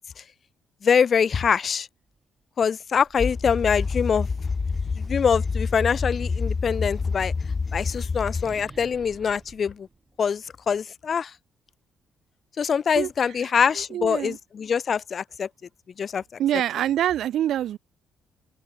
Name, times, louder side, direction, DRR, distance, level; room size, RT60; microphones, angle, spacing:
voice 1, 0.8-1.9 2.6-4.3 5.0-7.3 7.7-9.9 10.2-11.3 12.6-15.5 16.0-16.2, left 6 dB, 50° left, 0.3 m, -24 dB
sound 1, 2.0-2.2 2.6-6.2 7.2-10.8, right 3 dB, 20° right, 2.6 m, -49 dB
sound 2, 3.2-8.5, left 4 dB, 35° left, 0.7 m, -27 dB
voice 2, 13.8-14.4 16.4-17.8, right 11 dB, 75° right, 0.5 m, -25 dB
cardioid pair, 90°, 0 cm